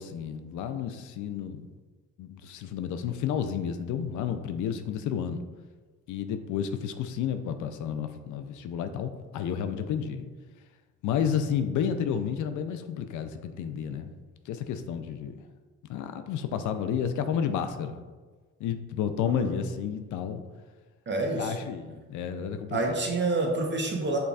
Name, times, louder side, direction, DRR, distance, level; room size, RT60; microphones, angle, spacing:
voice 1, 0.0-1.6 2.2-5.4 6.1-10.2 11.0-14.1 14.5-15.3 15.9-18.0 18.6-20.4 21.4-22.8, left 8 dB, 80° left, 9 dB, 0.4 m, -31 dB
voice 2, 19.2-19.6 21.1-21.5 22.7-24.2, right 2 dB, 40° right, 1 dB, 1.0 m, -28 dB
5.4 x 3.9 x 2.4 m, 1.4 s
cardioid pair, 90°, 30 cm